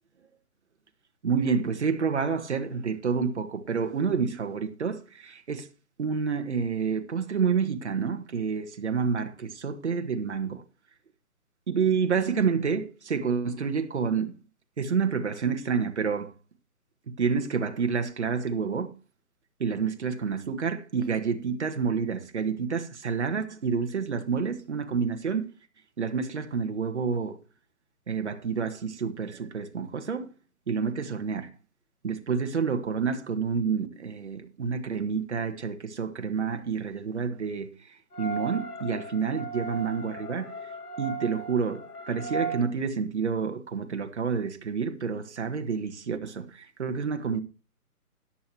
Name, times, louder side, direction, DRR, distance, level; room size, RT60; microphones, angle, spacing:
voice 1, 1.2-5.7 6.0-10.6 11.7-14.3 14.8-16.3 17.2-18.9 19.6-25.5 26.0-27.4 28.1-30.3 30.7-31.5 32.0-37.7 38.2-40.5 41.0-47.4, right 6 dB, 50° right, 1.4 m, -29 dB
sound 1, 38.1-42.6, right 4 dB, 80° left, 2.5 m, -36 dB
13.5 x 10.0 x 2.9 m
hypercardioid pair, 165°, 45 cm